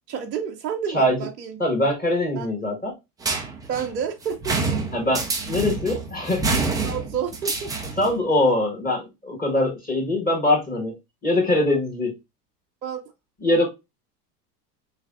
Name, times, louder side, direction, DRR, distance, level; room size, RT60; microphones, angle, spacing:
voice 1, 0.1-1.6 2.4-2.5 3.7-4.8 6.8-7.7 12.8-13.0, right 7 dB, 85° right, 0.8 m, -30 dB
voice 2, 1.6-2.9 4.9-6.4 8.0-10.9 11.2-12.1 13.4-13.6, left 1 dB, 20° left, 1.4 m, -22 dB
sound 1, 3.2-8.2, right 3 dB, 10° right, 0.4 m, -27 dB
3.2 x 3.2 x 2.4 m
hypercardioid pair, 90°, 48 cm